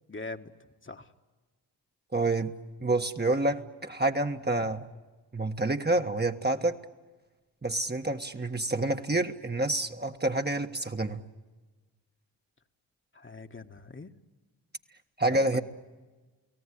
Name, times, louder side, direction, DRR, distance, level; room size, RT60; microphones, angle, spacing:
voice 1, 0.1-0.5 0.8-1.1 13.1-14.1 15.3-15.6, left 3 dB, 30° left, 5 dB, 1.7 m, -42 dB
voice 2, 2.1-2.5 2.8-4.9 5.3-6.8 7.6-11.2 15.2-15.6, right 2 dB, 25° right, 5 dB, 1.5 m, -28 dB
29.5 x 18.0 x 10.0 m, 1.3 s
supercardioid pair, 45°, 42 cm